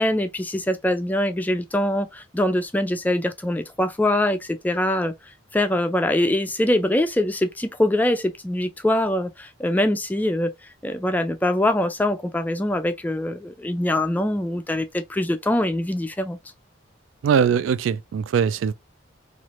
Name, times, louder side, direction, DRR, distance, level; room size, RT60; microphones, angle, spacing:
voice 1, 0.0-5.1 5.5-10.5 10.8-16.4, left 1 dB, 10° left, 0.3 m, -23 dB
voice 2, 17.2-18.7, right 7 dB, 85° right, 0.3 m, -21 dB
3.1 x 2.4 x 2.8 m
head